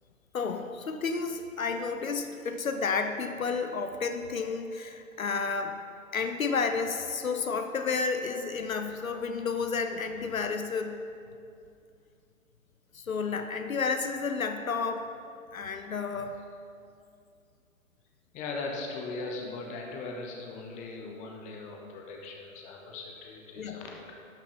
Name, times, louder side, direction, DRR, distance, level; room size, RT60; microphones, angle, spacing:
voice 1, 0.3-5.8 6.1-11.0 12.9-15.1 15.5-16.3 23.6-23.8, left 5 dB, 70° left, 7 dB, 0.9 m, -31 dB
voice 2, 18.3-24.1, left 3 dB, 15° left, 1 dB, 1.0 m, -39 dB
12.0 x 6.4 x 5.7 m, 2.4 s
figure-of-eight pair, 120°, 43 cm